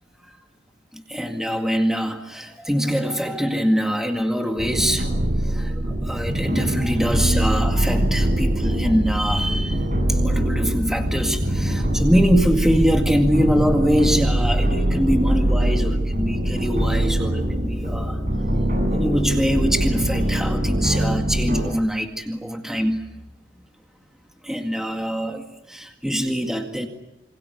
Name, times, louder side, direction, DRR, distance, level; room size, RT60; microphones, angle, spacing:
voice 1, 0.9-5.1 5.4-9.8 10.1-18.2 18.9-23.0 24.4-26.9, equal, 5° right, 4 dB, 2.0 m, -23 dB
sound 1, 4.6-21.6, right 1 dB, 45° right, 7.5 m, -22 dB
27.5 x 26.0 x 8.1 m, 0.88 s
head